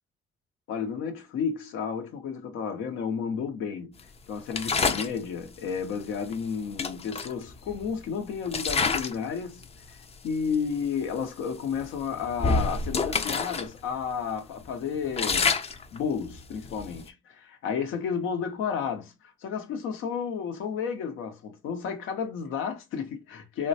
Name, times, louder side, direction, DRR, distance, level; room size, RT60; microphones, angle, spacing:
voice 1, 0.7-3.9 4.3-10.0 10.2-15.5 15.9-19.1 19.4-23.7, left 6 dB, 90° left, 0.8 m, -32 dB
sound 1, 4.5-5.2 6.3-6.4 6.8-8.0 8.5-9.2 9.6-9.9 10.5-10.6 11.0-11.2 11.7-13.7 14.0-14.1 14.6-17.1, left 4 dB, 30° left, 0.5 m, -28 dB
3.7 x 2.1 x 2.7 m
cardioid pair, 90°, 20 cm